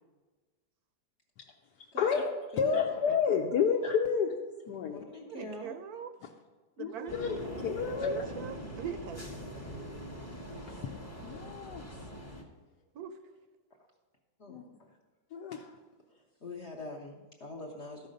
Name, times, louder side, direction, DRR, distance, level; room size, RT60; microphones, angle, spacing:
voice 1, 2.0-4.3 4.7-5.0 6.2-6.3 6.8-8.2 10.7-10.8 11.2-11.9 14.5-14.6 15.3-15.7, left 6 dB, 75° left, 2 dB, 1.2 m, -30 dB
voice 2, 2.5-2.9 3.6-3.8 4.8-5.8 14.4-14.9 16.1-18.1, left 2 dB, 50° left, 0 dB, 1.0 m, -44 dB
voice 3, 5.2-6.1 6.8-7.2 7.9-9.3 12.9-13.2, right 8 dB, 70° right, 9 dB, 1.0 m, -42 dB
sound 1, 7.1-12.4, equal, 10° left, 0.7 m, -42 dB
13.0 x 5.7 x 5.2 m, 1.3 s
omnidirectional pair, 1.9 m